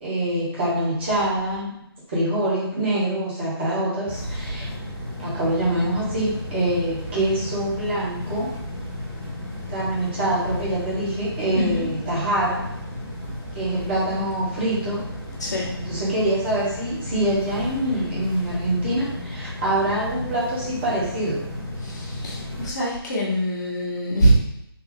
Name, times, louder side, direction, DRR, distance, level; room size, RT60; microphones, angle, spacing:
voice 1, 0.0-1.7 2.1-4.7 5.2-8.5 9.7-12.6 13.5-15.0 15.8-21.4, right 1 dB, 25° right, -7 dB, 1.3 m, -25 dB
sound 1, 4.1-22.7, left 1 dB, 5° left, 0.6 m, -34 dB
voice 2, 11.5-11.9 15.4-15.7 21.8-24.3, equal, 45° left, -5 dB, 1.2 m, -24 dB
3.5 x 2.3 x 3.7 m, 0.79 s
figure-of-eight pair, 155°, 13 cm